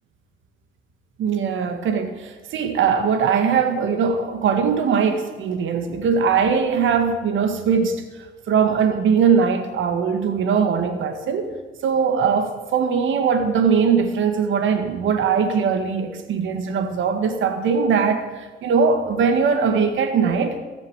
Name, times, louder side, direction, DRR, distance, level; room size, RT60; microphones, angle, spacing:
voice 1, 1.2-8.0 8.5-11.5 11.8-20.6, right 6 dB, 75° right, 1.8 m, -20 dB
17.5 x 7.4 x 8.0 m
cardioid pair, 90°, 20 cm